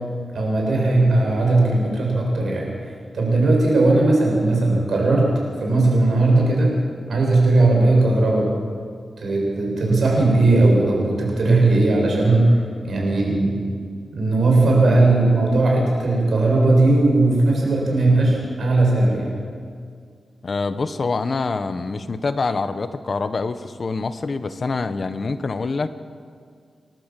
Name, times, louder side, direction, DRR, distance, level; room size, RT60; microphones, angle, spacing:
voice 1, 0.3-2.7 3.1-5.3 5.6-6.7 7.1-8.5 9.2-12.5 12.9-13.6 14.2-19.3, right 2 dB, 75° right, -1 dB, 7.4 m, -18 dB
voice 2, 20.4-25.9, left 4 dB, 50° left, 11 dB, 1.1 m, -25 dB
29.0 x 12.5 x 7.6 m, 2.1 s
wide cardioid pair, 85°, 0 cm